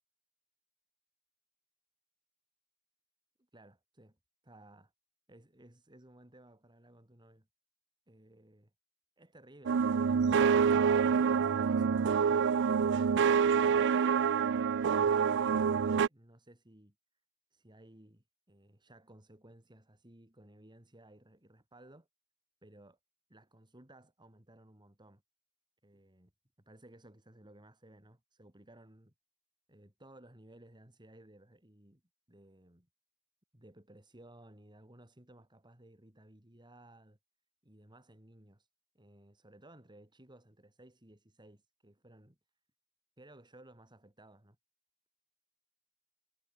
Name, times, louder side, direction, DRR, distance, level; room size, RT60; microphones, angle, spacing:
voice 1, 3.5-4.2 4.4-4.9 5.3-7.5 8.1-8.7 9.2-11.0 11.4-14.4 14.6-16.9 17.5-22.1 22.6-23.0 23.3-25.2 25.8-26.3 26.6-29.1 29.7-32.0 32.3-32.9 33.5-37.2 37.6-38.7 38.9-42.4 43.2-44.6, right 1 dB, 20° right, 2.8 m, -58 dB
sound 1, 9.7-16.1, right 6 dB, 55° right, 0.4 m, -27 dB
head